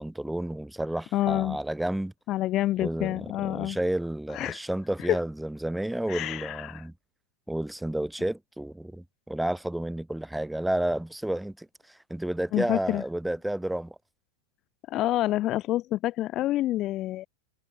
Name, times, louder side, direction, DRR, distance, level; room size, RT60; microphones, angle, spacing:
voice 1, 0.0-2.1 2.8-6.9 7.5-14.0, right 1 dB, 5° right, 3.5 m, -31 dB
voice 2, 1.1-1.6 2.3-3.8 4.3-4.6 5.1-5.2 6.1-6.8 12.5-13.0 14.9-17.3, left 15 dB, 35° left, 2.0 m, -27 dB
figure-of-eight pair, 90°, 0 cm